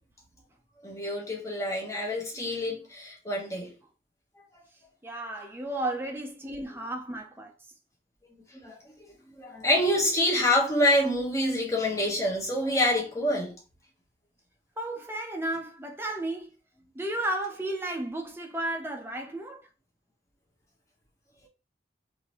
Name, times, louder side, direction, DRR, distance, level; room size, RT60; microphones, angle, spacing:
voice 1, 0.8-3.7 8.5-8.8 9.4-13.6, left 1 dB, 15° left, 1.0 m, -26 dB
voice 2, 5.0-7.5 14.8-16.5 16.9-19.7, right 1 dB, 15° right, 0.5 m, -33 dB
3.6 x 2.6 x 2.9 m
head